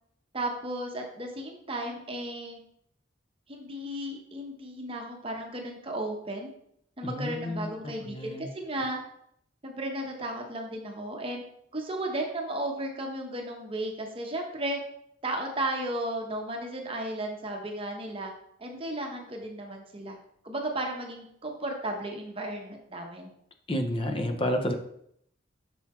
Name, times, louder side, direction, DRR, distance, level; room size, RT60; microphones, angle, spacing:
voice 1, 0.3-2.6 3.5-6.5 7.0-9.0 9.6-11.4 11.7-14.8 15.2-18.3 18.6-20.2 20.4-23.3, right 1 dB, 30° right, 2 dB, 0.9 m, -34 dB
voice 2, 7.0-7.7 8.1-8.5 23.7-24.7, left 1 dB, 30° left, 6 dB, 0.6 m, -30 dB
6.1 x 3.9 x 4.3 m, 0.71 s
head